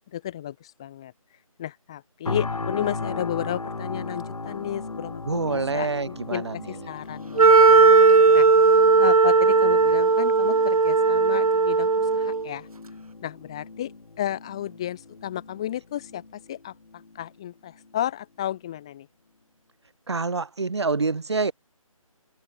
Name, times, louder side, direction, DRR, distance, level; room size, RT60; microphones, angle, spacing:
voice 1, 0.1-1.1 1.6-7.9 8.3-8.5 8.7-12.7 13.2-19.1, left 11 dB, 10° left, 1.4 m, -33 dB
sound 1, 2.3-17.3 17.8-17.9, left 3 dB, 80° left, 2.0 m, -37 dB
voice 2, 5.3-6.6 20.1-21.5, right 4 dB, 50° right, 0.8 m, -26 dB
Wind instrument woodwind instrument, 7.4-12.5, right 4 dB, 80° right, 0.9 m, -17 dB
figure-of-eight pair, 175°, 18 cm